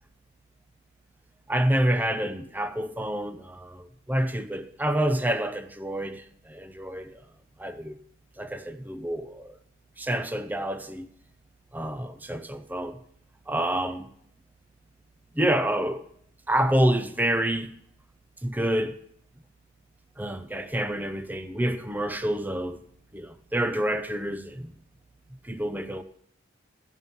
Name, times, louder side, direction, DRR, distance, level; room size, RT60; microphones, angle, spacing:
voice 1, 1.5-7.1 7.6-8.0 8.4-9.6 10.0-11.1 11.7-13.0 13.5-14.1 15.4-16.1 16.5-17.7 18.4-19.0 20.2-22.8 23.1-24.7 25.4-26.0, right 1 dB, 10° right, 0.5 m, -28 dB
14.0 x 5.4 x 9.1 m
head